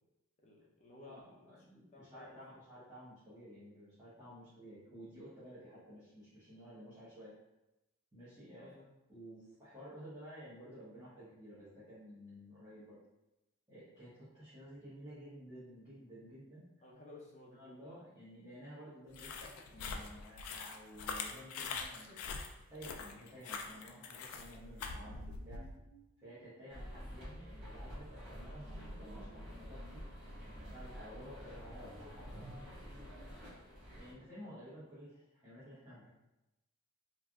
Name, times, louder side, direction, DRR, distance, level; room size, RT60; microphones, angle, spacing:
voice 1, 0.4-1.6 1.9-2.6 8.6-8.8 16.8-17.8 21.6-21.7 22.0-22.2, left 2 dB, 35° left, -2 dB, 0.5 m, -56 dB
voice 2, 1.0-7.3 8.1-8.7 9.1-13.0 13.7-16.6 17.5-22.1 22.7-25.6 26.2-30.2 30.6-32.5 34.0-36.1, equal, 20° right, -12 dB, 0.9 m, -53 dB
sound 1, 19.1-25.7, left 5 dB, 80° left, 0.4 m, -43 dB
sound 2, 24.4-32.7, right 2 dB, 80° right, 0.4 m, -58 dB
sound 3, 26.7-34.1, equal, 50° right, 1.4 m, -49 dB
3.2 x 2.6 x 2.3 m, 0.95 s
head